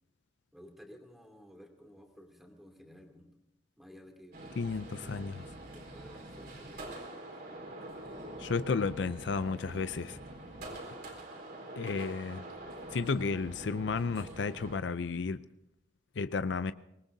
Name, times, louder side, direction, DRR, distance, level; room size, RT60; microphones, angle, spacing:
voice 1, 0.5-3.3 3.8-7.0 9.4-10.2 12.2-12.4, equal, ahead, 2.7 m, -55 dB
sound 1, 4.3-14.8, right 1 dB, 60° right, 4.2 m, -45 dB
voice 2, 4.6-5.4 8.4-10.1 11.8-12.4 12.9-15.4 16.2-16.7, left 4 dB, 70° left, 0.5 m, -32 dB
25.0 x 19.5 x 2.7 m
head